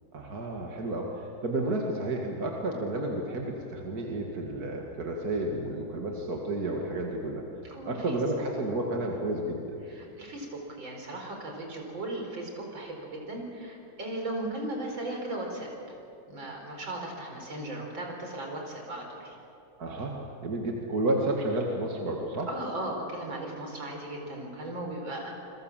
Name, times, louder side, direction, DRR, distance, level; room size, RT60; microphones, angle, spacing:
voice 1, 0.1-7.4 7.8-9.8 19.8-22.5, right 1 dB, 50° right, 0 dB, 2.5 m, -31 dB
voice 2, 7.7-8.2 9.8-16.0 16.3-19.4 22.5-25.3, right 1 dB, 70° right, 1 dB, 5.3 m, -37 dB
28.5 x 21.5 x 7.5 m, 2.7 s
omnidirectional pair, 2.2 m